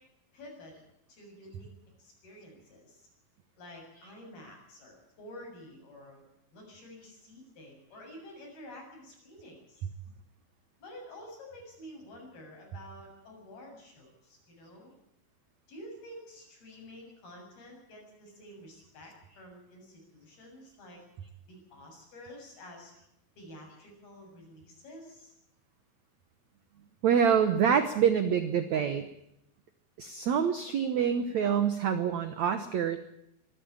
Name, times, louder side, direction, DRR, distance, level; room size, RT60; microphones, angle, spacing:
voice 1, 0.3-0.7 1.1-1.7 2.0-3.1 3.6-6.2 6.5-9.9 10.8-14.9 15.7-21.0 21.5-22.9 23.4-25.3, left 1 dB, 60° left, 1 dB, 9.1 m, -49 dB
voice 2, 27.0-29.1 30.0-33.0, right 7 dB, 80° right, 10 dB, 1.6 m, -26 dB
25.0 x 13.5 x 8.7 m, 0.79 s
omnidirectional pair, 5.1 m